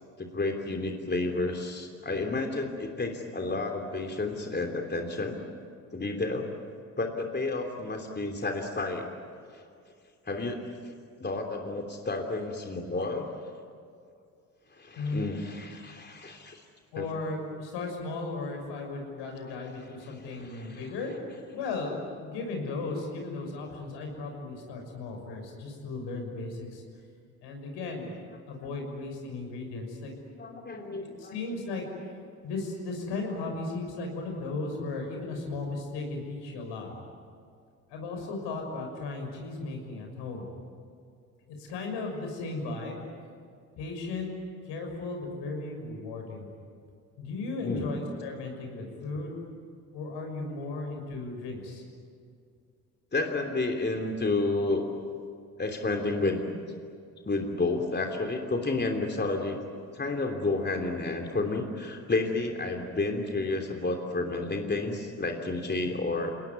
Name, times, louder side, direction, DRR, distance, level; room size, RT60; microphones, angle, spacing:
voice 1, 0.2-5.4 5.9-6.5 7.0-9.1 9.5-9.6 10.2-10.7 11.2-13.3 14.7-16.6 17.0-17.1 20.0-20.9 28.6-28.9 30.4-31.4 47.6-47.9 49.1-49.2 53.1-54.8 55.6-56.5 57.3-59.6 59.9-66.3, left 3 dB, 20° left, 3 dB, 3.2 m, -31 dB
voice 2, 15.0-15.3 16.9-21.1 21.5-26.8 27.4-28.2 28.5-30.1 31.0-31.8 32.4-36.9 37.9-40.5 41.5-43.1 43.8-44.3 44.6-46.5 47.2-49.4 49.9-51.8, left 3 dB, 65° left, 2 dB, 6.5 m, -36 dB
29.5 x 19.0 x 9.7 m, 2.3 s
figure-of-eight pair, 50°, 45 cm